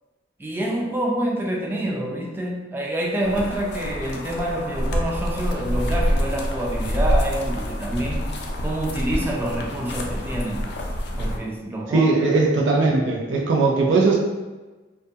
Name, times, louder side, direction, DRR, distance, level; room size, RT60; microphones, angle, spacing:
voice 1, 0.4-8.3 8.6-10.7 11.2-12.1, right 1 dB, 10° right, -2 dB, 0.3 m, -27 dB
sound 1, 3.2-11.4, equal, 65° left, 0.4 m, -26 dB
voice 2, 11.9-14.1, right 3 dB, 90° right, -3 dB, 0.4 m, -19 dB
2.2 x 2.1 x 2.7 m, 1.2 s
head